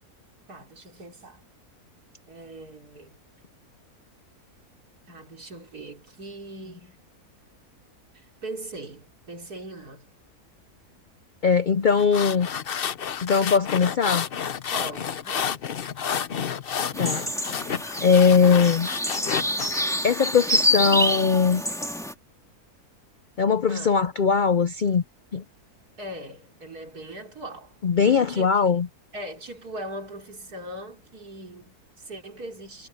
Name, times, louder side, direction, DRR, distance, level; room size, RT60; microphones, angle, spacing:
voice 1, 0.5-1.4 2.3-3.2 5.1-7.0 8.1-10.1 14.7-15.6 23.7-23.9 26.0-28.5 29.1-32.9, right 1 dB, 80° right, 4.3 m, -40 dB
voice 2, 11.4-12.5 13.2-14.3 17.0-17.2 18.0-18.9 20.0-21.6 23.4-25.0 25.3-25.4 27.8-28.9, left 6 dB, 75° left, 0.4 m, -20 dB
sound 1, 11.9-19.8, left 8 dB, 50° left, 0.8 m, -30 dB
sound 2, 16.9-22.1, left 1 dB, ahead, 2.3 m, -27 dB
omnidirectional pair, 1.6 m